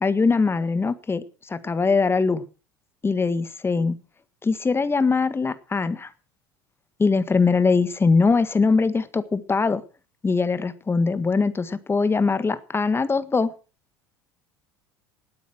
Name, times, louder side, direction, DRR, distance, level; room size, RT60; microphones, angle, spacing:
voice 1, 0.0-2.4 3.0-4.0 4.4-6.1 7.0-9.8 10.2-13.5, left 4 dB, 20° left, 13 dB, 1.7 m, -22 dB
18.0 x 9.1 x 6.2 m, 0.35 s
hypercardioid pair, 70°, 12 cm